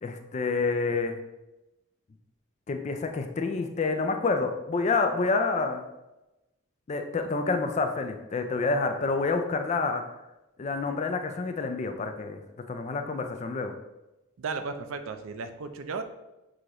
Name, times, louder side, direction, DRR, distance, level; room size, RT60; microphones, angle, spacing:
voice 1, 0.0-1.2 2.7-5.8 6.9-10.0 10.6-12.4 12.7-13.7, left 3 dB, 30° left, 6 dB, 0.3 m, -28 dB
voice 2, 14.4-16.0, right 4 dB, 65° right, 8 dB, 0.4 m, -35 dB
6.3 x 2.5 x 2.9 m, 0.97 s
head